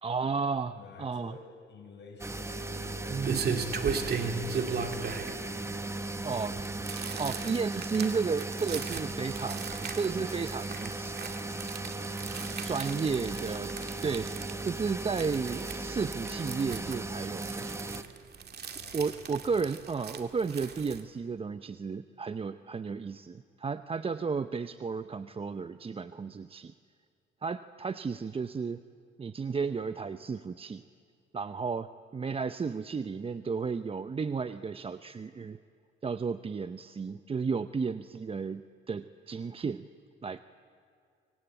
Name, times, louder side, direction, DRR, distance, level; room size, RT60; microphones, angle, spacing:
voice 1, 0.0-1.4 3.1-3.6 6.2-6.6 7.2-11.2 12.6-13.7 14.0-17.7 18.9-26.7 27.4-28.8 29.2-30.8 31.3-35.6 36.0-39.9 40.2-40.4, right 5 dB, 30° right, 12 dB, 0.7 m, -33 dB
voice 2, 0.7-3.7 4.3-6.8 12.9-14.1 18.7-19.6, left 4 dB, 65° left, 3 dB, 6.6 m, -51 dB
sound 1, 2.2-18.0, right 2 dB, 15° right, 1.2 m, -37 dB
sound 2, 2.5-21.0, right 5 dB, 55° right, 2.4 m, -38 dB
26.0 x 24.5 x 9.1 m, 2.3 s
cardioid pair, 90°, 20 cm